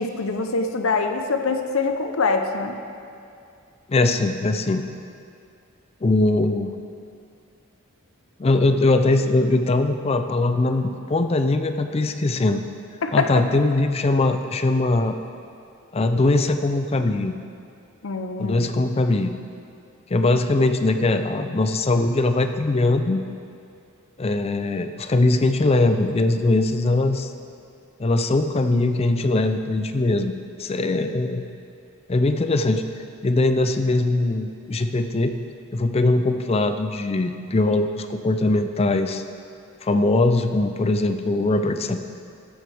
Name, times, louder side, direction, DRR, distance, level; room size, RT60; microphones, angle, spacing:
voice 1, 0.0-2.8 13.0-13.3 18.0-18.7, left 4 dB, 75° left, 6 dB, 0.7 m, -24 dB
voice 2, 3.9-4.8 6.0-6.7 8.4-12.6 13.1-15.2 15.9-17.4 18.4-19.3 20.1-23.2 24.2-27.3 28.0-31.4 32.1-32.8 33.2-35.3 35.7-39.2 39.8-42.0, left 2 dB, 30° left, 8 dB, 0.4 m, -21 dB
13.5 x 7.5 x 3.4 m, 2.4 s
head